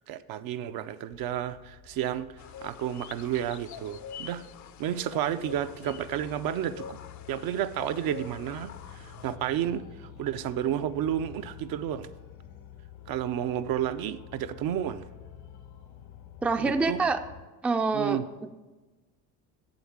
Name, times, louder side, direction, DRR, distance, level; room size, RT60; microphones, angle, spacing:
voice 1, 0.1-4.4 4.8-7.0 7.3-12.1 13.1-15.0 16.6-17.0 17.9-18.2, right 10 dB, 65° right, 10 dB, 0.6 m, -31 dB
sound 1, 1.1-17.4, left 10 dB, 75° left, 1.2 m, -49 dB
sound 2, 2.4-9.4, left 9 dB, 50° left, 0.6 m, -46 dB
sound 3, 8.7-12.8, equal, 90° right, 1.1 m, -54 dB
voice 2, 16.4-17.2 17.6-18.2, right 4 dB, 5° right, 8 dB, 0.4 m, -25 dB
7.8 x 7.8 x 7.2 m, 1.2 s
cardioid pair, 110°, 38 cm